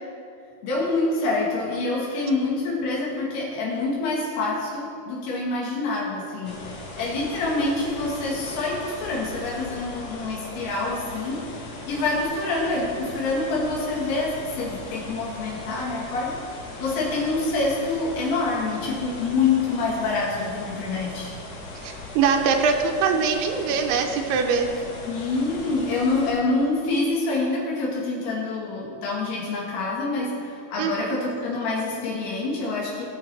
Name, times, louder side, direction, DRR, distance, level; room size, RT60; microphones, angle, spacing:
voice 1, 0.6-6.6 7.0-11.4 11.9-16.4 16.8-21.3 25.0-33.0, left 3 dB, 80° left, -3 dB, 3.3 m, -26 dB
sound 1, 6.4-26.3, left 1 dB, 50° left, 2.6 m, -38 dB
voice 2, 21.8-24.7 30.8-31.2, right 5 dB, 90° right, 3 dB, 2.7 m, -23 dB
17.5 x 7.1 x 3.2 m, 2.4 s
omnidirectional pair, 4.6 m